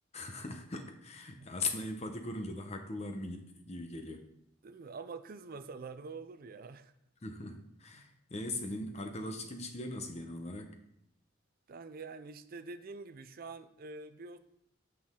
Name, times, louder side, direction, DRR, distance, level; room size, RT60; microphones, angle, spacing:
voice 1, 0.1-4.3 7.2-10.8, left 2 dB, 35° left, 5 dB, 0.9 m, -40 dB
voice 2, 4.6-6.9 11.7-14.4, right 4 dB, 50° right, 11 dB, 0.5 m, -46 dB
8.6 x 5.8 x 3.7 m, 0.76 s
head